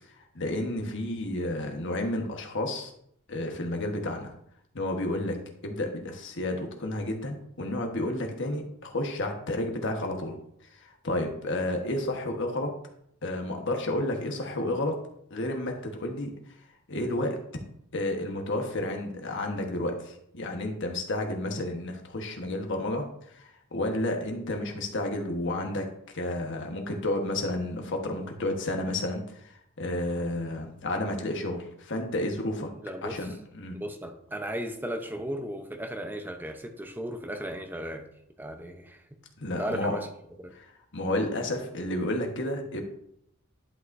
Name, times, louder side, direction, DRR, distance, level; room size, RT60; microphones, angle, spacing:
voice 1, 0.2-2.9 3.3-4.3 4.7-5.4 5.6-10.3 10.8-12.7 13.2-14.9 15.3-16.3 16.9-17.4 17.9-25.9 26.1-29.4 29.8-32.7 33.0-33.8 39.4-40.0 40.5-42.8, left 1 dB, 60° left, 3 dB, 1.3 m, -31 dB
voice 2, 32.8-33.2 33.7-38.1 38.4-39.0 39.6-40.1 40.4-40.5, right 1 dB, 10° right, 5 dB, 0.8 m, -35 dB
11.0 x 5.7 x 2.7 m, 0.72 s
head